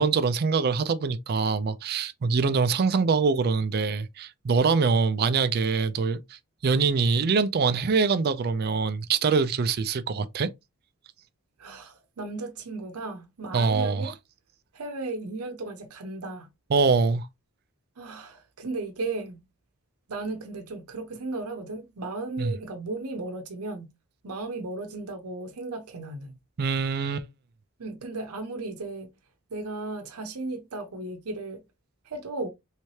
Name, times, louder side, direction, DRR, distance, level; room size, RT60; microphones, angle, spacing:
voice 1, 0.0-10.5 13.5-14.1 16.7-17.3 22.4-22.5 26.6-27.3, right 4 dB, 45° right, 0.4 m, -24 dB
voice 2, 11.6-14.1 14.7-16.5 18.0-19.4 20.1-23.9 24.2-26.3 27.8-29.1 29.5-31.6 32.0-32.5, right 2 dB, 90° right, 0.7 m, -35 dB
3.2 x 3.1 x 2.8 m
head